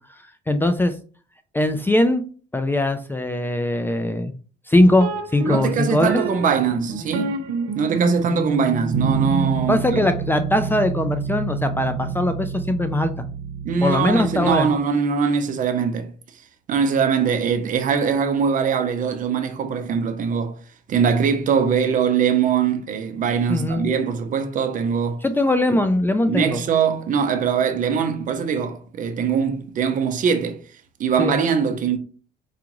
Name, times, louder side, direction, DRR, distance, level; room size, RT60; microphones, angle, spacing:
voice 1, 0.5-0.9 1.5-2.2 2.5-4.3 4.7-6.2 9.7-13.2 13.8-14.7 23.5-23.9 25.2-26.6 31.2-31.4, left 1 dB, 10° left, 0.3 m, -20 dB
sound 1, 5.0-14.7, right 4 dB, 85° right, 0.8 m, -28 dB
voice 2, 5.4-7.4 7.7-10.0 13.6-16.1 16.7-20.6 20.9-25.2 26.3-30.6 31.0-32.0, right 6 dB, 50° right, 0.7 m, -22 dB
4.7 x 2.4 x 3.0 m
cardioid pair, 110°, 17 cm